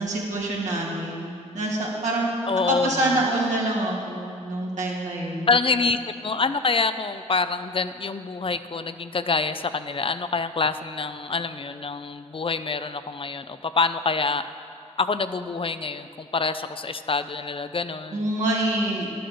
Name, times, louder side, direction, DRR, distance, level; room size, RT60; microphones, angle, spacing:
voice 1, 0.0-2.3 2.7-5.5 18.1-19.1, right 1 dB, 85° right, -4 dB, 2.3 m, -26 dB
voice 2, 2.5-3.3 5.5-14.4 15.0-18.3, left 4 dB, 45° left, 11 dB, 0.5 m, -26 dB
11.5 x 7.7 x 6.8 m, 2.4 s
cardioid pair, 60°, 12 cm